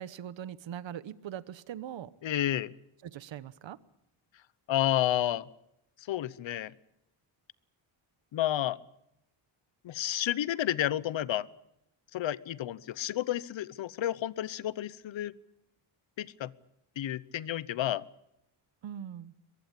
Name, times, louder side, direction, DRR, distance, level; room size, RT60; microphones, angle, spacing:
voice 1, 0.0-2.1 3.0-3.8 18.8-19.3, right 10 dB, 65° right, 17 dB, 1.1 m, -41 dB
voice 2, 2.2-2.7 4.7-5.5 6.1-6.7 8.3-8.8 9.8-11.5 12.1-15.3 16.2-16.5 17.0-18.0, left 12 dB, 65° left, 19 dB, 0.9 m, -31 dB
23.5 x 22.0 x 8.3 m, 0.81 s
wide cardioid pair, 160°, 49 cm